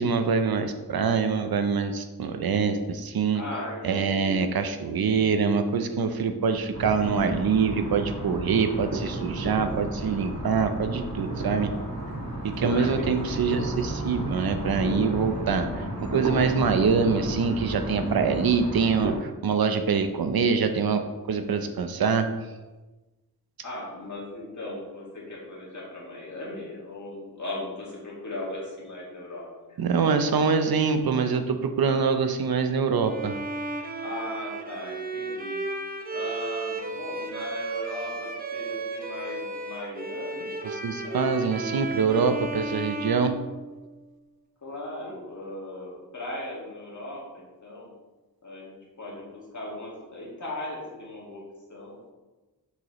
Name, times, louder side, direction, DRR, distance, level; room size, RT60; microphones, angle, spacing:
voice 1, 0.0-3.4 3.8-11.7 12.6-21.0 21.3-22.3 29.8-33.3 40.8-43.4, right 5 dB, 80° right, 7 dB, 0.6 m, -25 dB
voice 2, 3.3-4.5 12.7-13.4 23.6-29.8 34.0-35.6 36.1-40.5 41.0-41.3 44.6-47.9 48.4-51.4 51.7-52.0, left 1 dB, 55° left, -4 dB, 2.0 m, -38 dB
sound 1, 6.7-19.2, right 1 dB, 50° right, 1.2 m, -32 dB
Bowed string instrument, 33.0-44.0, right 3 dB, 25° right, 0.6 m, -34 dB
6.6 x 4.8 x 3.0 m, 1.2 s
wide cardioid pair, 95°, 36 cm